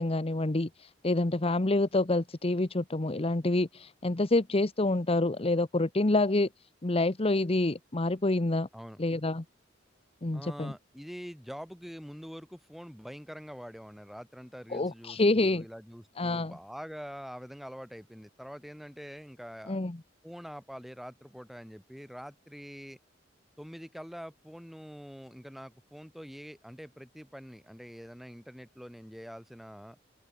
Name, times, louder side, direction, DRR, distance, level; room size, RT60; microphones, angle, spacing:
voice 1, 0.0-6.5 6.8-8.7 9.0-9.4 10.2-10.7 14.7-15.6 16.2-16.5 19.7-20.0, left 2 dB, 30° left, 1.0 m, -27 dB
voice 2, 10.3-19.8 20.2-23.0 23.6-30.0, equal, ahead, 5.3 m, -45 dB
open air
head